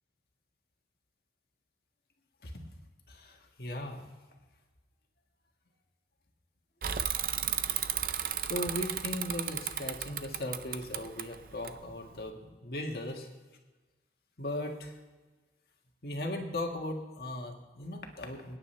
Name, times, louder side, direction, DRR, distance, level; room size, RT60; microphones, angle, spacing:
voice 1, 2.4-2.8 3.1-4.0 8.5-13.3 14.4-15.0 16.0-18.6, left 1 dB, 55° left, 2 dB, 1.7 m, -38 dB
Bicycle / Mechanisms, 6.8-12.3, right 10 dB, 50° right, 0.5 m, -34 dB
28.0 x 9.7 x 3.3 m, 1.2 s
head